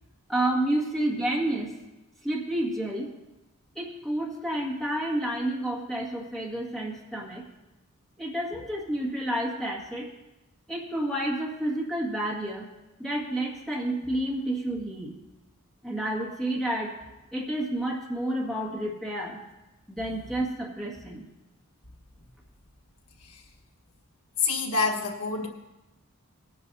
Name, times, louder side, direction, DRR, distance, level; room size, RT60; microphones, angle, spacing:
voice 1, 0.3-1.7 2.2-3.1 3.8-7.4 8.2-10.1 10.7-12.7 13.0-15.1 15.8-17.0 17.3-19.4 19.9-21.3, right 1 dB, ahead, -4 dB, 1.9 m, -30 dB
voice 2, 24.4-25.5, left 4 dB, 85° left, 2 dB, 1.5 m, -27 dB
19.5 x 10.5 x 2.8 m, 1.0 s
head